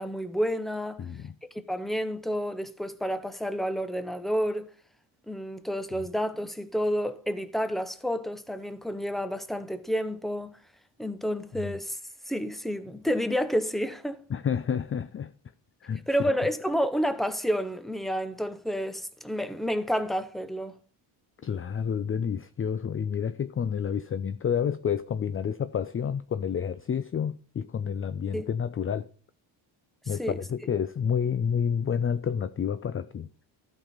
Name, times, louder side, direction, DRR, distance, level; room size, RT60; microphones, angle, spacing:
voice 1, 0.0-1.0 1.7-4.7 5.3-10.6 11.0-12.0 12.3-14.2 16.1-20.8 28.3-28.5 30.2-30.4, equal, ahead, 0.9 m, -30 dB
voice 2, 1.0-1.3 6.0-6.1 11.6-11.8 14.3-15.3 15.8-16.1 21.4-29.1 30.1-33.3, left 7 dB, 30° left, 0.4 m, -29 dB
12.0 x 5.4 x 5.6 m
cardioid pair, 90°, 47 cm